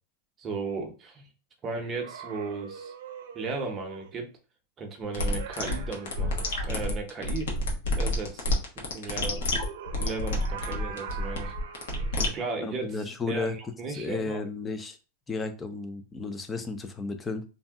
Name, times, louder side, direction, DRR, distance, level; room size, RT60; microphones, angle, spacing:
voice 1, 0.4-1.3 1.6-2.9 3.3-4.3 4.8-6.4 6.6-7.5 8.0-9.4 9.9-11.5 12.2-13.0 13.3-14.4, right 3 dB, 20° right, 2 dB, 0.7 m, -35 dB
sound 1, 1.7-4.1 5.2-6.7 9.3-12.2, right 7 dB, 75° right, 0.6 m, -42 dB
sound 2, 5.1-12.3, left 1 dB, 80° left, 0.8 m, -29 dB
voice 2, 12.6-13.6 13.9-15.0 15.3-17.4, left 3 dB, 15° left, 8 dB, 0.4 m, -33 dB
2.6 x 2.0 x 3.5 m, 0.32 s
supercardioid pair, 150°, 0 cm